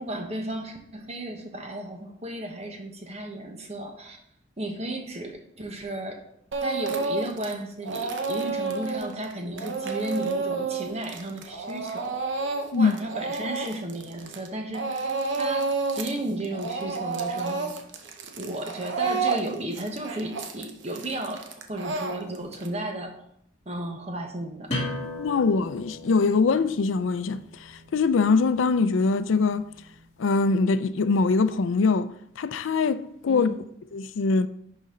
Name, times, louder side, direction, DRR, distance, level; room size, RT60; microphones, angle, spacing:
voice 1, 0.0-4.2 4.6-6.2 6.6-12.2 12.7-15.1 15.4-17.8 18.4-23.2 23.6-24.7 33.3-33.6, right 1 dB, 35° right, 1.1 m, -34 dB
Speech / Crying sobbing, 6.5-7.5 7.8-14.5 14.7-16.2 16.4-22.7, right 4 dB, 65° right, 0.9 m, -30 dB
sound 1, 24.7-30.1, left 1 dB, 35° left, 2.6 m, -38 dB
voice 2, 25.2-27.4 27.9-29.6 30.2-33.5 33.9-34.5, left 4 dB, 80° left, 0.4 m, -23 dB
11.0 x 4.2 x 3.8 m
head